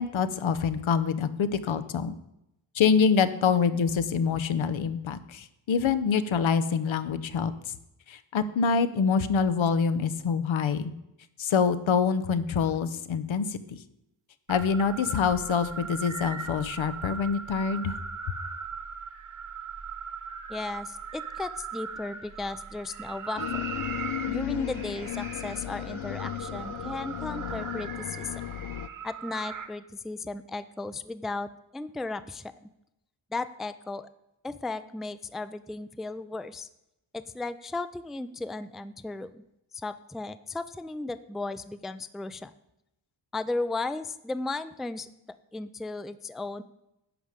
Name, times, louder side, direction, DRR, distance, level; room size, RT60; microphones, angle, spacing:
voice 1, 0.0-2.1 2.7-7.7 8.1-10.9 11.4-13.8 14.5-18.0, left 6 dB, 80° left, 12 dB, 0.9 m, -26 dB
sound 1, 14.5-29.7, right 6 dB, 40° right, 1.2 m, -39 dB
voice 2, 20.5-23.6 24.3-28.4 29.0-32.5 33.3-34.1 34.4-36.7 37.1-39.4 39.7-42.5 43.3-45.1 45.5-46.6, left 3 dB, ahead, 13 dB, 0.3 m, -35 dB
sound 2, 23.4-28.9, left 13 dB, 60° left, 0.5 m, -35 dB
11.0 x 5.0 x 8.0 m, 0.85 s
wide cardioid pair, 110°, 47 cm